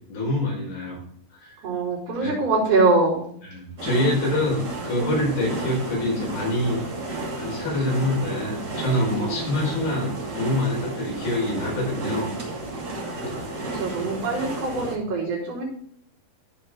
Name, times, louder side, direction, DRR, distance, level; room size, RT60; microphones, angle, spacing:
voice 1, 0.1-1.0 1.3-1.6 2.2-2.3 3.5-6.8 7.3-12.3, left 1 dB, 75° left, -3 dB, 6.6 m, -25 dB
voice 2, 1.6-3.2 7.5-7.6 9.1-9.5 13.2-13.3 13.7-15.6, right 3 dB, 70° right, -7 dB, 6.4 m, -24 dB
sound 1, 3.8-15.0, right 2 dB, 30° right, 2.6 m, -32 dB
15.5 x 5.3 x 3.7 m, 0.63 s
omnidirectional pair, 4.3 m